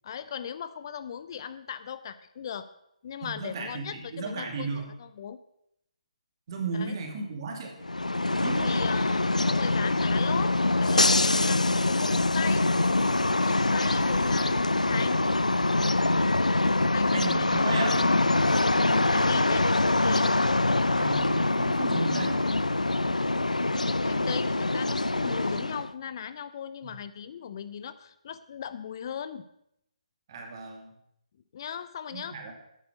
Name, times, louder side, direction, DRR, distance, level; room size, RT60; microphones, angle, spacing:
voice 1, 0.0-2.7 3.0-5.4 6.7-6.9 8.6-10.5 10.8-12.7 13.4-15.4 16.9-18.0 18.9-20.4 24.0-29.4 31.5-32.4, left 8 dB, 40° left, 13 dB, 0.5 m, -38 dB
voice 2, 3.2-4.8 6.5-7.8 8.4-8.7 17.1-18.0 20.8-22.4 26.8-27.0 30.3-30.9 32.1-32.5, right 4 dB, 40° right, 2 dB, 2.5 m, -35 dB
sound 1, 7.8-25.9, left 2 dB, 85° left, 0.5 m, -24 dB
9.8 x 9.4 x 6.3 m, 0.77 s
figure-of-eight pair, 140°, 4 cm